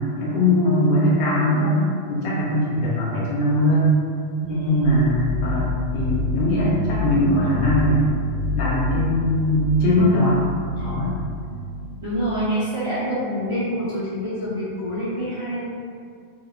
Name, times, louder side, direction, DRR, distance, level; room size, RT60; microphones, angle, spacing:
voice 1, 0.1-3.9 4.5-8.0 8.5-10.4 10.8-11.2, left 1 dB, 60° left, -7 dB, 0.6 m, -20 dB
voice 2, 4.4-5.1 10.8-10.9 12.0-15.7, equal, 55° right, -12 dB, 0.3 m, -26 dB
sound 1, 4.8-12.5, left 3 dB, 75° right, 0.9 m, -29 dB
2.8 x 2.1 x 2.3 m, 2.2 s
omnidirectional pair, 1.3 m